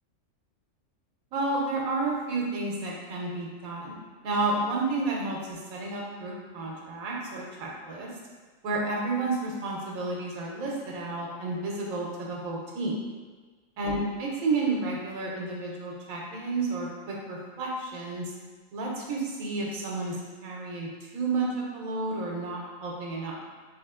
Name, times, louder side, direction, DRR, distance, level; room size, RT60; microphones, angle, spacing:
voice 1, 1.3-8.1 8.6-13.0 13.8-18.3 18.7-23.4, right 3 dB, 80° right, -2 dB, 1.2 m, -31 dB
3.3 x 2.7 x 3.6 m, 1.4 s
omnidirectional pair, 1.4 m